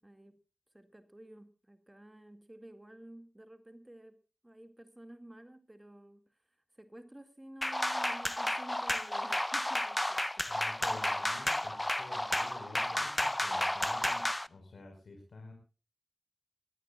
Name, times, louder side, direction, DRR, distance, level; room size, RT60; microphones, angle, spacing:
voice 1, 0.0-0.4 0.7-4.2 4.4-10.5 13.5-13.7, right 1 dB, 15° right, 8 dB, 2.3 m, -52 dB
sound 1, 7.6-14.5, left 1 dB, 15° left, 0.7 m, -32 dB
voice 2, 10.4-15.5, left 2 dB, 80° left, 2 dB, 5.5 m, -50 dB
23.5 x 17.5 x 2.5 m, 0.34 s
wide cardioid pair, 100°, 0 cm